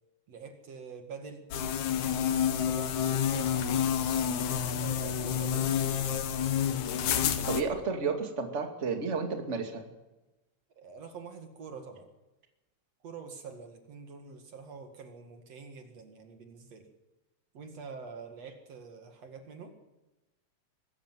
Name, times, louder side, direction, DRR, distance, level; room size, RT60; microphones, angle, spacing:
voice 1, 0.3-1.5 2.6-3.7 4.8-6.2 10.8-12.1 13.0-16.9 17.5-19.7, right 5 dB, 60° right, 6 dB, 3.1 m, -46 dB
sound 1, 1.5-7.6, left 8 dB, 75° left, 2.7 m, -29 dB
voice 2, 7.5-9.8, right 4 dB, 25° right, 4 dB, 2.5 m, -32 dB
23.0 x 14.0 x 9.3 m, 1.0 s
omnidirectional pair, 3.4 m